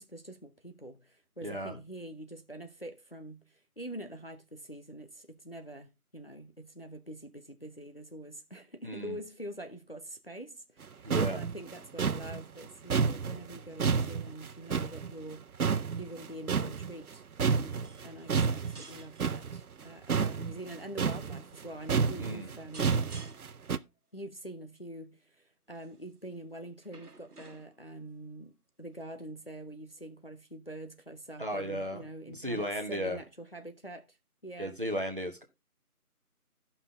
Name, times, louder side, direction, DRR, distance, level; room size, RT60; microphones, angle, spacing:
voice 1, 0.0-23.0 24.1-34.2 34.4-34.8, right 1 dB, 40° left, 0.7 m, -45 dB
voice 2, 1.4-1.8 8.8-9.2 11.0-11.4 22.2-22.5 31.4-32.0 32.3-33.2 34.6-35.4, equal, 35° right, 1.1 m, -35 dB
sound 1, 10.8-10.9 11.1-15.3 15.6-17.1 17.4-23.8, right 5 dB, 70° right, 0.6 m, -30 dB
sound 2, 17.8-18.3 18.6-19.4 20.1-20.5 21.3-21.5 22.7-23.6 25.7-26.1 26.8-27.9 29.0-29.1, right 3 dB, 90° right, 1.3 m, -52 dB
13.5 x 5.7 x 3.5 m
figure-of-eight pair, 170°, 45 cm